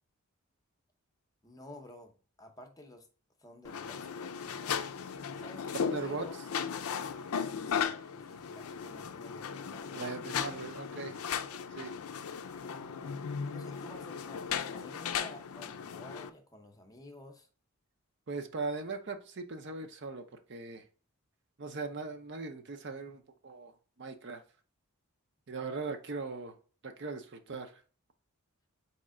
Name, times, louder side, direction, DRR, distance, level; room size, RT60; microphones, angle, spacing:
voice 1, 1.4-2.1 2.4-3.1 3.4-4.8 5.4-6.3 7.7-10.1 12.5-13.1 13.5-17.5, left 1 dB, 15° left, 0.6 m, -52 dB
sound 1, 3.6-16.3, left 7 dB, 75° left, 0.4 m, -37 dB
voice 2, 5.8-6.3 9.9-11.2 11.7-11.9 18.3-20.2 20.5-20.8 21.6-23.7 24.0-24.4 25.5-26.5 26.8-27.7, right 3 dB, 50° right, 0.6 m, -39 dB
4.3 x 3.2 x 3.7 m
head